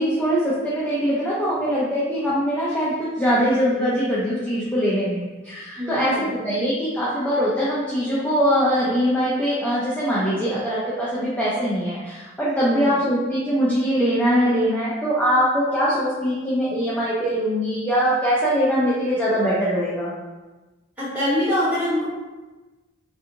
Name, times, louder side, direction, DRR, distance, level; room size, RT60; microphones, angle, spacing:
voice 1, 0.0-20.1, equal, 5° left, -9 dB, 0.5 m, -22 dB
voice 2, 5.8-6.3 12.7-12.9 21.0-22.1, left 1 dB, 10° right, -11 dB, 1.3 m, -24 dB
3.3 x 2.5 x 2.8 m, 1.2 s
head